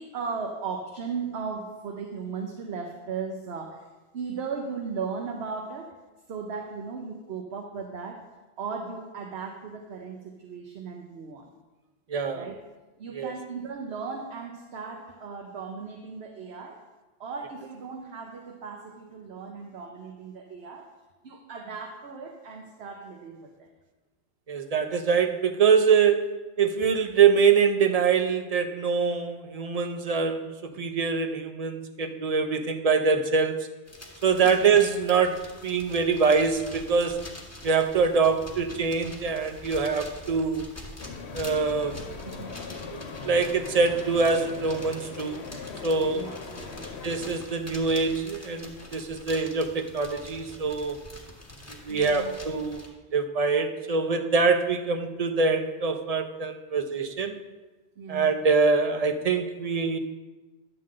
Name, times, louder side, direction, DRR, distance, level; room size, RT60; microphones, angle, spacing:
voice 1, 0.0-3.9 4.1-5.9 6.3-8.2 8.6-11.5 12.3-12.6 13.0-16.8 17.2-20.9 21.2-23.7 34.4-34.5 42.2-42.5 46.1-46.4 46.7-46.9 51.9-52.3 58.0-58.3, right 5 dB, 75° right, 2 dB, 1.0 m, -36 dB
voice 2, 12.1-12.5 13.1-13.3 24.5-33.8 34.2-37.2 37.6-40.6 41.3-42.0 42.9-45.5 45.8-46.3 47.0-51.0 51.7-57.4 58.1-60.0, right 5 dB, 40° right, 6 dB, 0.6 m, -24 dB
sound 1, 33.9-52.9, left 1 dB, 15° left, 1.3 m, -45 dB
Crowd at Designersfair, 41.0-47.4, left 5 dB, 80° left, 1.1 m, -40 dB
11.0 x 3.7 x 7.5 m, 1.2 s
omnidirectional pair, 1.1 m